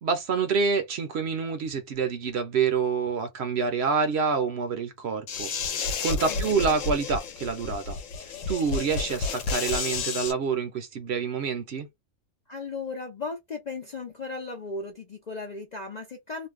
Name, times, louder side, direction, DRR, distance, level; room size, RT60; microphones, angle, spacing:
voice 1, 0.0-8.0 8.5-11.9, right 5 dB, 60° right, 0.8 m, -27 dB
sound 1, 5.3-10.3, left 4 dB, 75° left, 1.0 m, -31 dB
voice 2, 6.1-6.6 12.5-16.5, left 3 dB, 50° left, 0.5 m, -36 dB
2.5 x 2.2 x 3.4 m
omnidirectional pair, 1.4 m